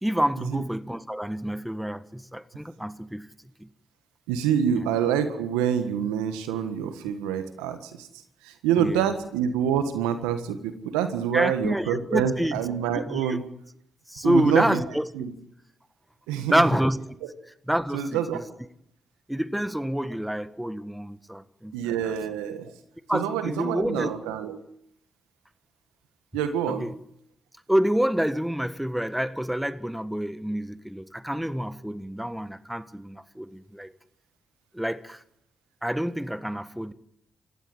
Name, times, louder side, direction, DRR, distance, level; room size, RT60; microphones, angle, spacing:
voice 1, 0.0-3.3 3.6-3.7 8.8-9.1 11.3-12.6 12.9-13.4 14.1-15.1 16.5-17.0 17.7-18.4 19.3-22.1 23.1-24.1 26.7-26.9 27.7-33.9 34.7-35.2 35.8-36.9, equal, 5° right, 1.6 m, -27 dB
voice 2, 4.3-8.1 8.4-13.4 14.2-14.8 15.2-15.3 16.3-16.6 17.9-18.4 21.7-22.7 23.1-24.6 26.3-26.9, right 8 dB, 90° right, 1.6 m, -26 dB
27.5 x 15.5 x 7.9 m
hypercardioid pair, 40°, 0 cm